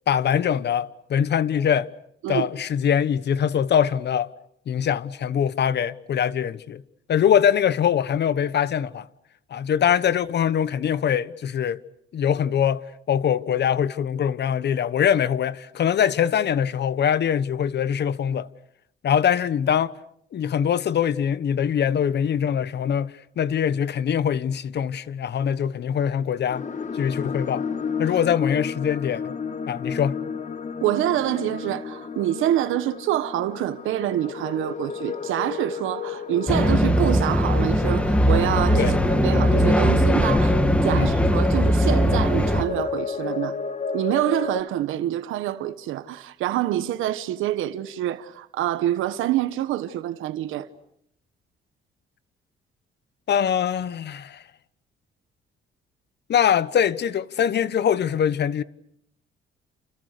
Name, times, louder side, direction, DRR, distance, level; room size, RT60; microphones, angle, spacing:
voice 1, 0.1-1.9 2.3-4.3 4.7-6.8 7.1-9.1 9.5-11.8 12.1-18.5 19.0-20.0 20.3-26.6 26.9-27.7 28.0-29.3 29.7-30.2 38.8-38.9 40.9-41.1 53.3-54.4 56.3-58.6, left 8 dB, 60° left, 1.2 m, -23 dB
sound 1, 26.5-44.6, left 6 dB, 40° left, 1.7 m, -32 dB
voice 2, 30.8-40.6 40.8-43.6 43.9-50.7, right 13 dB, 90° right, 1.3 m, -26 dB
sound 2, 36.5-42.6, equal, 5° left, 2.1 m, -20 dB
29.5 x 28.5 x 6.7 m
cardioid pair, 90°, 20 cm